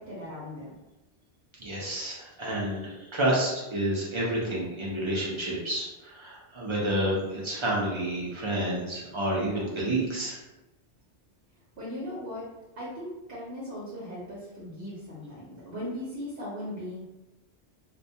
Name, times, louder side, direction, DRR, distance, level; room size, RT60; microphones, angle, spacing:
voice 1, 0.1-0.7 11.8-12.4 12.7-17.1, left 1 dB, 65° right, -7 dB, 0.8 m, -38 dB
voice 2, 1.6-10.4, right 1 dB, 40° right, -5 dB, 0.4 m, -29 dB
2.1 x 2.1 x 2.7 m, 1.0 s
omnidirectional pair, 1.2 m